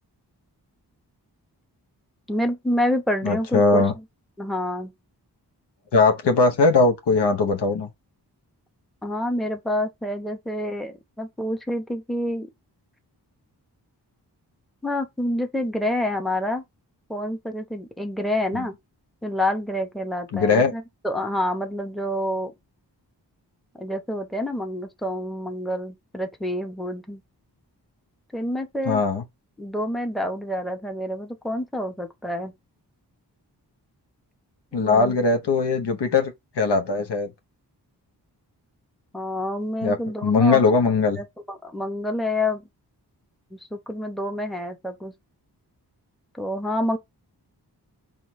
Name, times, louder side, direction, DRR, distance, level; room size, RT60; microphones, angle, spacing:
voice 1, 2.3-4.0 4.4-4.9 9.0-12.5 14.8-16.6 17.1-18.7 19.2-22.5 23.8-27.2 28.3-29.0 29.6-32.5 34.7-35.2 39.1-40.6 41.2-42.7 43.5-45.1 46.3-47.0, left 1 dB, ahead, 0.8 m, -28 dB
voice 2, 3.2-3.9 5.9-7.9 18.5-18.6 20.3-20.7 28.9-29.2 34.7-37.3 39.8-41.2, left 4 dB, 75° left, 0.9 m, -20 dB
4.2 x 2.5 x 3.1 m
cardioid pair, 45°, 41 cm